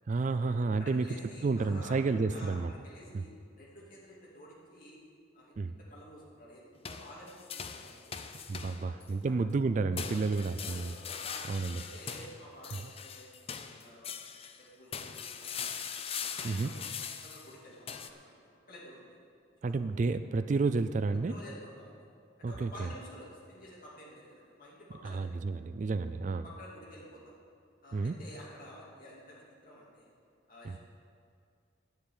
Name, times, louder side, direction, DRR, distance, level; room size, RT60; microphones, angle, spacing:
voice 1, 0.1-1.1 1.4-2.7 3.1-3.2 5.6-5.8 8.5-10.9 11.5-11.8 16.4-16.7 19.6-21.3 22.4-22.7 25.0-26.4 27.9-28.2 30.6-30.8, right 3 dB, 40° right, 11 dB, 0.3 m, -30 dB
voice 2, 0.8-3.3 3.6-5.0 5.3-8.3 8.8-8.9 9.9-10.9 11.2-11.5 11.8-14.1 14.6-15.9 16.3-16.9 17.2-18.4 18.7-19.1 19.6-19.8 21.3-22.0 22.4-25.2 26.4-27.4 27.8-30.1 30.5-30.8, equal, 45° left, -5 dB, 2.8 m, -51 dB
sound 1, 6.8-9.1 10.0-14.6 14.9-18.1, left 7 dB, 30° left, 0.5 m, -41 dB
9.7 x 7.2 x 9.0 m, 2.3 s
head